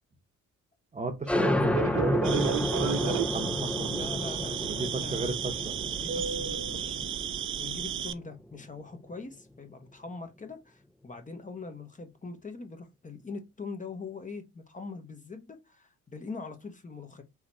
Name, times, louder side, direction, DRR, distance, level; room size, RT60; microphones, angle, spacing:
voice 1, 0.9-2.6 2.8-4.1 4.6-5.7, right 3 dB, 25° right, 0.9 m, -34 dB
sound 1, 1.3-8.5, left 1 dB, 5° left, 0.5 m, -31 dB
Fixed-wing aircraft airplane, 1.7-8.1, right 6 dB, 70° right, 1.0 m, -36 dB
sound 2, 2.2-8.1, right 10 dB, 45° right, 0.4 m, -35 dB
voice 2, 3.9-5.3 5.7-17.2, left 4 dB, 25° left, 1.0 m, -43 dB
3.9 x 2.9 x 4.3 m
cardioid pair, 90°, 30 cm